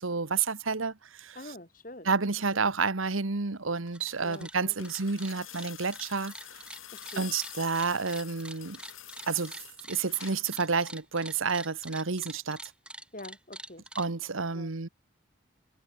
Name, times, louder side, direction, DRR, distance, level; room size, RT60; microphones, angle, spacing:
voice 1, 0.0-1.5 2.0-6.6 7.1-8.8 9.3-12.7 14.0-14.9, right 4 dB, 85° right, 1.4 m, -30 dB
voice 2, 1.3-2.1 2.5-2.7 4.2-4.9 7.1-7.3 13.1-13.8 14.5-14.7, left 1 dB, 40° left, 4.9 m, -45 dB
sound 1, 3.8-10.5 11.8-11.9, left 12 dB, 85° left, 6.6 m, -47 dB
sound 2, 3.8-4.1 4.3-14.1, right 1 dB, 5° right, 2.3 m, -45 dB
head